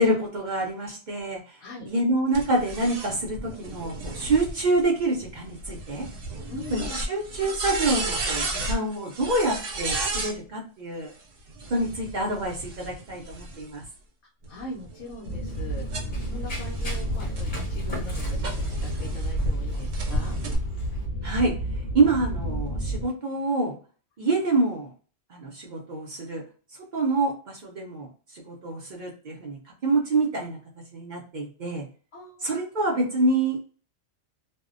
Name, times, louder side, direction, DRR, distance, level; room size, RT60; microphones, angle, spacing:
voice 1, 0.0-1.6 1.8-6.1 6.7-11.1 11.7-13.8 21.2-21.5 21.9-23.7 24.2-24.9 25.3-26.4 26.9-28.1 28.5-30.6 30.9-31.9 32.4-33.6, right 2 dB, 55° right, -1 dB, 0.5 m, -26 dB
Gauss shots mixdown, 2.3-10.3 11.5-13.9 14.4-19.5 19.9-20.6, right 2 dB, 80° right, 1.1 m, -34 dB
voice 2, 6.5-7.0 14.5-15.9 16.2-20.4 32.1-32.7, left 2 dB, 90° left, -4 dB, 1.0 m, -41 dB
sound 1, 15.3-23.0, right 1 dB, 60° left, 0.8 m, -30 dB
Run, 15.5-21.1, equal, 40° left, 1.1 m, -42 dB
2.6 x 2.1 x 2.4 m, 0.40 s
omnidirectional pair, 1.3 m